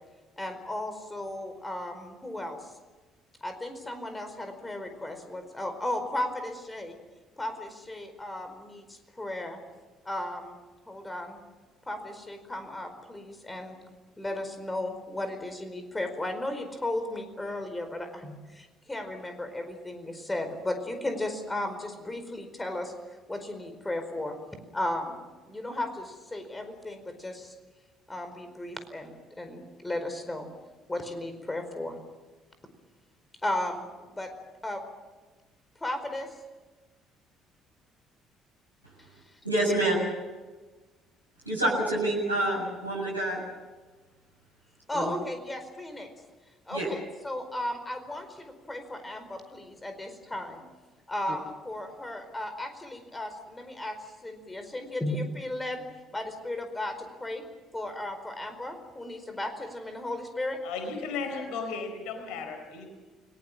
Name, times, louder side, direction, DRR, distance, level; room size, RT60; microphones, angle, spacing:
voice 1, 0.4-2.6 3.4-7.0 7.4-9.6 10.0-10.6 10.9-11.4 11.9-13.8 14.2-22.9 23.3-24.4 24.7-25.2 25.5-27.5 28.1-30.5 30.9-32.0 33.4-34.3 34.6-34.8 35.8-36.3 44.9-46.1 46.7-50.6 51.1-54.0 54.2-55.8 56.1-57.4 57.7-60.6, left 1 dB, 15° left, 8 dB, 4.7 m, -35 dB
voice 2, 39.4-40.0 41.5-43.4 44.9-45.1 46.7-46.9 51.2-51.3, right 1 dB, 90° right, -5 dB, 7.8 m, -27 dB
voice 3, 60.6-62.9, left 4 dB, 60° left, 5 dB, 4.4 m, -35 dB
29.5 x 18.5 x 7.4 m, 1.3 s
figure-of-eight pair, 50°, 0 cm